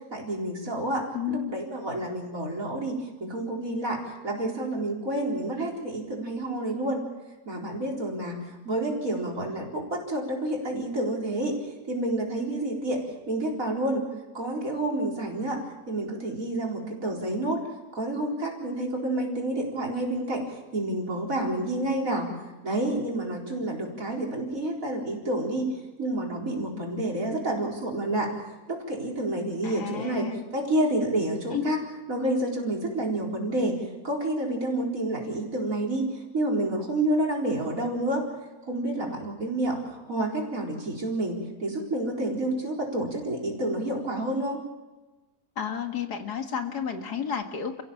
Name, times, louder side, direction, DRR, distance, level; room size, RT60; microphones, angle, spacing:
voice 1, 0.1-4.0 4.2-7.0 7.5-11.6 11.9-13.0 13.3-14.0 14.3-15.6 15.9-17.6 17.9-20.4 20.7-22.3 22.6-25.7 26.0-28.3 28.7-30.2 30.5-31.8 32.1-36.1 36.3-38.2 38.7-44.6, right 1 dB, 55° right, -1 dB, 4.7 m, -29 dB
voice 2, 1.1-1.6 29.6-30.4 31.5-31.7 45.6-47.8, left 8 dB, 85° left, 5 dB, 2.4 m, -31 dB
29.5 x 16.0 x 7.2 m, 1.1 s
omnidirectional pair, 1.7 m